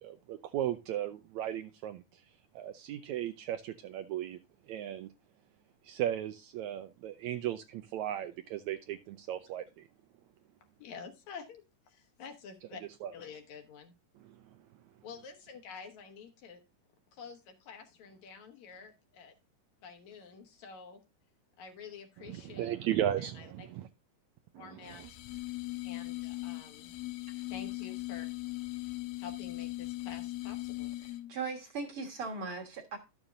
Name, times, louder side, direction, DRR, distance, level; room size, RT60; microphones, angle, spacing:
voice 1, 0.0-4.4 4.7-5.1 5.8-9.9 13.0-13.1 14.2-14.7 22.2-23.9 24.5-25.1, right 11 dB, 80° right, 1.7 m, -36 dB
voice 2, 10.8-12.8 13.1-13.9 15.0-16.6 17.1-19.3 19.8-21.0 21.6-22.7 23.2-23.7 24.6-25.2 25.8-26.9 27.5-28.3 29.2-30.9, left 5 dB, 65° left, 2.5 m, -49 dB
sound 1, 24.8-31.4, left 20 dB, 85° left, 1.5 m, -39 dB
voice 3, 31.0-33.0, right 4 dB, 50° right, 2.1 m, -39 dB
12.5 x 7.1 x 2.5 m
omnidirectional pair, 3.7 m